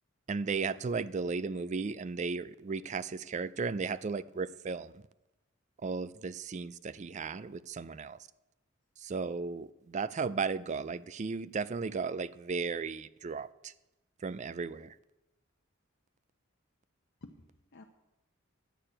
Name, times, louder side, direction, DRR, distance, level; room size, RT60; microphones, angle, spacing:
voice 1, 0.3-5.0 5.8-8.3 9.0-13.7 14.2-15.0, right 4 dB, 35° right, 0.4 m, -35 dB
voice 2, 1.2-1.9 2.8-2.9 17.2-17.8, left 2 dB, 55° left, 0.8 m, -55 dB
11.5 x 6.6 x 8.8 m
head